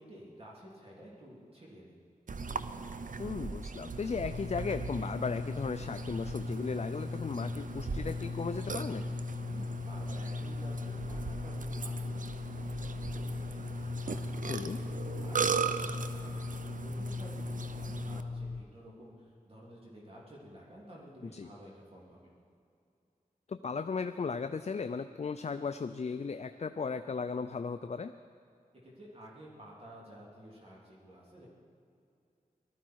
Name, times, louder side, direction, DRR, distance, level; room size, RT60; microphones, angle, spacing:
voice 1, 0.0-2.0 9.5-22.3 28.8-31.5, equal, 40° right, -5 dB, 3.4 m, -52 dB
Burping eructation, 2.3-18.2, right 5 dB, 60° right, 0.6 m, -39 dB
voice 2, 3.2-9.2 14.5-14.8 21.3-21.5 23.5-28.1, left 5 dB, 50° left, 10 dB, 0.4 m, -36 dB
sound 1, 4.3-18.6, left 3 dB, 90° left, 0.7 m, -38 dB
sound 2, 5.4-14.4, left 1 dB, 30° left, 2.8 m, -63 dB
19.0 x 13.5 x 4.7 m, 2.5 s
wide cardioid pair, 75°, 15 cm